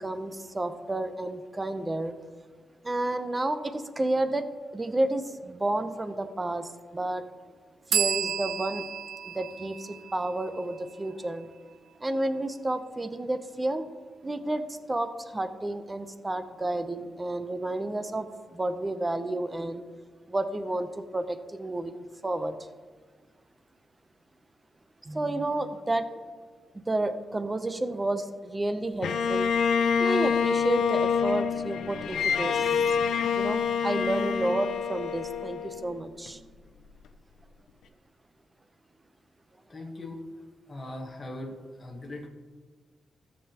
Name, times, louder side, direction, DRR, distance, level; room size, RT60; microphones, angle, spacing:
voice 1, 0.0-2.1 2.8-4.5 4.7-7.2 7.9-8.9 9.3-11.5 12.0-13.9 14.2-19.9 20.3-22.6 25.0-26.1 26.7-29.5 30.0-33.0 33.4-36.4, right 2 dB, 15° right, 9 dB, 0.6 m, -31 dB
sound 1, 7.9-11.5, right 8 dB, 65° right, 0.3 m, -32 dB
Bowed string instrument, 29.0-36.3, left 6 dB, 80° left, 0.7 m, -27 dB
voice 2, 39.7-40.2 40.7-42.3, left 1 dB, 20° left, -2 dB, 1.2 m, -40 dB
17.0 x 7.6 x 2.9 m, 1.5 s
wide cardioid pair, 170°, 0 cm